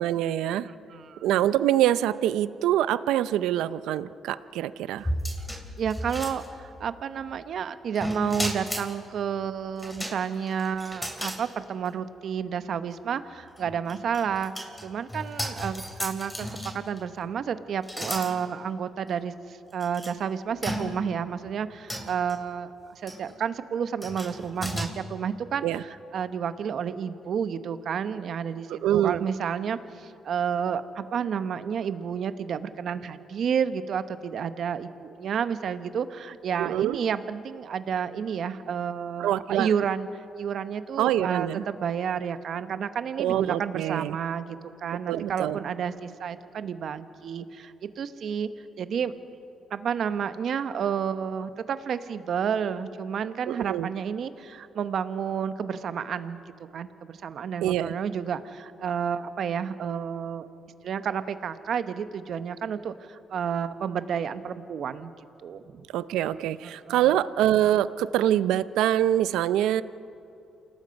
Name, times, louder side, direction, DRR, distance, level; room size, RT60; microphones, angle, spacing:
voice 1, 0.0-0.7 1.2-5.1 25.6-25.8 28.7-29.2 36.6-37.0 39.2-39.7 41.0-41.6 43.2-44.2 45.1-45.6 53.5-53.9 57.6-57.9 65.9-69.8, right 12 dB, 90° right, 15 dB, 0.5 m, -25 dB
voice 2, 0.6-1.3 5.8-16.5 16.7-48.5 48.8-49.1 49.7-56.4 56.7-60.5 60.8-65.1 65.4-65.9 66.6-67.1, right 7 dB, 60° right, 11 dB, 1.0 m, -31 dB
sound 1, 5.0-6.9 8.0-8.9 9.8-11.4 11.9-12.0 13.5-17.0 17.8-18.3 19.1-19.2 19.8-20.1 20.6-21.2 21.9-22.3 23.1-23.3 24.0-24.9, equal, 10° left, 3.0 m, -34 dB
28.0 x 18.5 x 5.3 m, 2.8 s
cardioid pair, 90°, 0 cm